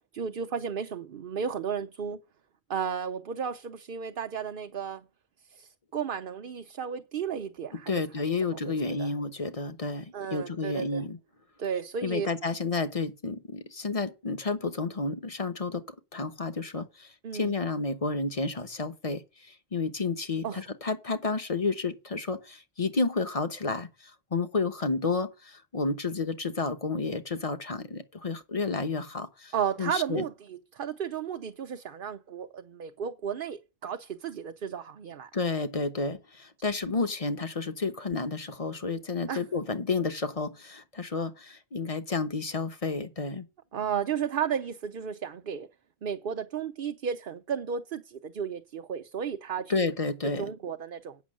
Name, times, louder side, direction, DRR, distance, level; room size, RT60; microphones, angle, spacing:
voice 1, 0.1-2.2 2.7-5.0 5.5-8.0 8.5-8.6 9.0-9.1 10.1-11.0 11.6-12.3 17.2-17.5 20.4-20.6 29.5-35.3 39.3-39.4 43.7-45.7 46.0-49.8 50.4-51.2, right 7 dB, 60° right, 0.9 m, -33 dB
voice 2, 7.9-11.2 12.0-15.9 16.1-30.2 35.3-43.5 49.7-50.4, left 4 dB, 35° left, 1.0 m, -31 dB
8.4 x 6.3 x 7.5 m
omnidirectional pair, 1.1 m